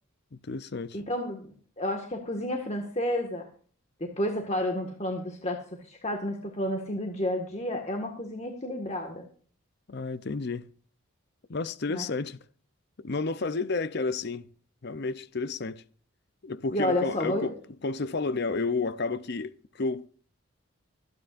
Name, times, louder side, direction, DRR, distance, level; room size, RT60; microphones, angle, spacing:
voice 1, 0.3-1.0 9.9-10.6 11.5-12.4 13.0-14.5 14.8-15.8 16.4-17.5 17.8-20.1, left 3 dB, 50° left, 0.6 m, -31 dB
voice 2, 0.9-1.5 1.8-3.4 4.0-9.3 11.9-12.0 16.7-17.5, left 1 dB, 30° left, 1.8 m, -31 dB
25.0 x 9.6 x 2.6 m
head